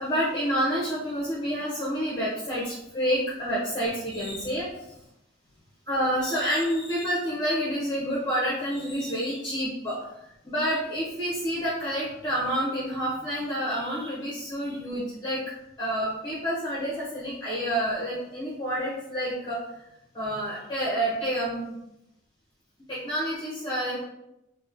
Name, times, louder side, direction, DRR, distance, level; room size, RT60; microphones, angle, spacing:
voice 1, 0.0-4.9 5.9-10.1 10.4-15.4 15.8-19.6 20.1-21.8 22.9-24.0, equal, 20° left, -6 dB, 0.7 m, -28 dB
4.7 x 2.1 x 2.5 m, 0.86 s
head